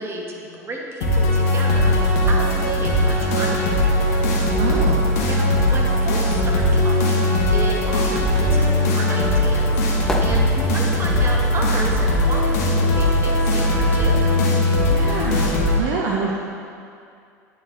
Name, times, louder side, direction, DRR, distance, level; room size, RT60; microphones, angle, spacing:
voice 1, 0.0-3.6 4.7-4.9 5.2-7.2 7.5-14.3, right 2 dB, 25° right, -1 dB, 1.2 m, -32 dB
sound 1, 1.0-15.8, left 1 dB, 65° left, 1.0 m, -19 dB
voice 2, 4.6-5.1 14.9-16.3, right 5 dB, 55° right, -2 dB, 0.6 m, -25 dB
sound 2, 8.3-13.3 13.6-15.2 15.4-15.5, equal, 5° left, 0.7 m, -33 dB
9.2 x 4.1 x 3.1 m, 2.4 s
figure-of-eight pair, 75°, 9 cm